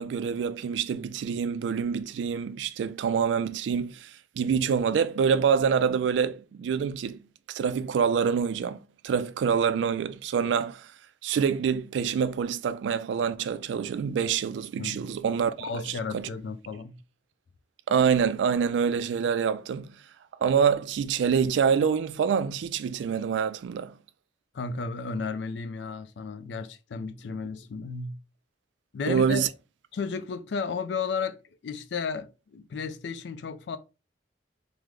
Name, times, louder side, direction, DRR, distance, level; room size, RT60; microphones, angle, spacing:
voice 1, 0.0-7.2 7.5-10.9 11.2-16.3 17.9-19.9 20.4-24.0 29.1-29.5, right 6 dB, 90° right, 0.3 m, -26 dB
voice 2, 14.8-15.1 15.6-17.0 24.5-28.2 28.9-29.5 29.9-31.4 31.6-33.8, left 5 dB, 75° left, 0.4 m, -33 dB
3.2 x 2.0 x 3.5 m
head